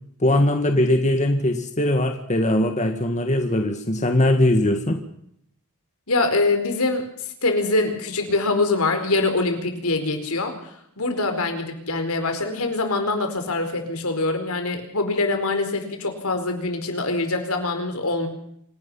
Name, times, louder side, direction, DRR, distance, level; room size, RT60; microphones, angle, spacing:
voice 1, 0.2-5.0, left 1 dB, 30° left, 5 dB, 1.9 m, -20 dB
voice 2, 6.1-7.0 7.4-18.3, left 2 dB, 75° left, 6 dB, 4.6 m, -24 dB
27.0 x 18.0 x 5.6 m, 0.71 s
head